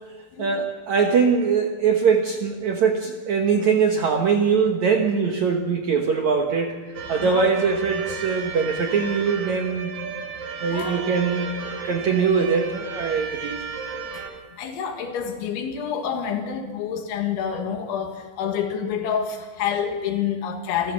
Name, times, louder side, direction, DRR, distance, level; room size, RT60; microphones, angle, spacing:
voice 1, 0.4-6.8 7.1-9.9 10.6-13.6, right 5 dB, 80° right, 3 dB, 1.6 m, -22 dB
sound 1, 6.9-14.3, right 5 dB, 50° right, 2.8 m, -33 dB
voice 2, 10.7-11.1 14.1-14.2 14.6-20.9, left 7 dB, 85° left, 4 dB, 4.2 m, -28 dB
28.0 x 14.0 x 7.3 m, 1.3 s
omnidirectional pair, 5.2 m